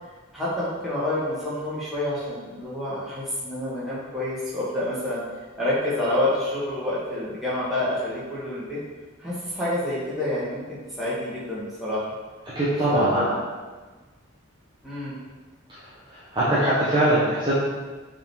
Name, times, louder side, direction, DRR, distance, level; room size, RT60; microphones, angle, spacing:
voice 1, 0.3-5.2 5.6-8.8 9.2-12.1 12.9-13.4 14.8-15.1, left 1 dB, ahead, -10 dB, 2.2 m, -28 dB
voice 2, 12.5-13.2 16.1-17.5, right 1 dB, 20° right, -10 dB, 1.4 m, -22 dB
6.6 x 4.3 x 4.6 m, 1.3 s
head